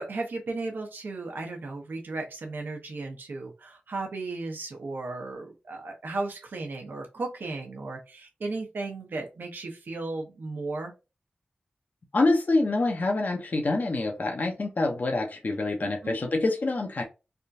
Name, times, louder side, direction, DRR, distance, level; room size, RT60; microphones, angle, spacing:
voice 1, 0.0-10.9 15.8-16.2, right 3 dB, 80° right, 2 dB, 0.9 m, -35 dB
voice 2, 12.1-17.0, left 2 dB, 60° left, 2 dB, 0.8 m, -26 dB
3.6 x 2.3 x 2.7 m, 0.27 s
cardioid pair, 50°, 3 cm